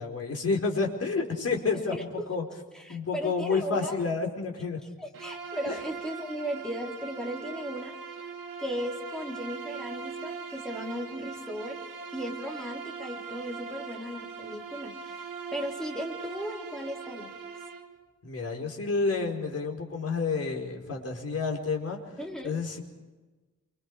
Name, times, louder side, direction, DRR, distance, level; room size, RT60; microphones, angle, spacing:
voice 1, 0.0-2.4 2.9-4.8 5.7-5.8 18.2-22.0 22.4-22.8, left 4 dB, 45° left, 1 dB, 4.8 m, -29 dB
voice 2, 1.9-2.3 2.7-4.0 5.0-8.0 8.6-11.8 12.1-17.3 22.2-22.6, equal, ahead, 0 dB, 3.5 m, -36 dB
Bowed string instrument, 5.1-17.9, right 5 dB, 80° right, 2.9 m, -41 dB
28.0 x 26.0 x 4.9 m, 1.2 s
wide cardioid pair, 145°, 33 cm